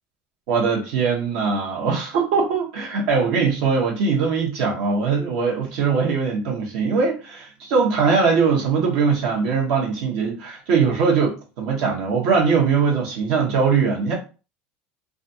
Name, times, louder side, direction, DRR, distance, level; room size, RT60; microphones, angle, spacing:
voice 1, 0.5-14.1, right 5 dB, 75° right, 0.8 m, -21 dB
2.4 x 2.3 x 2.6 m
supercardioid pair, 105°, 5 cm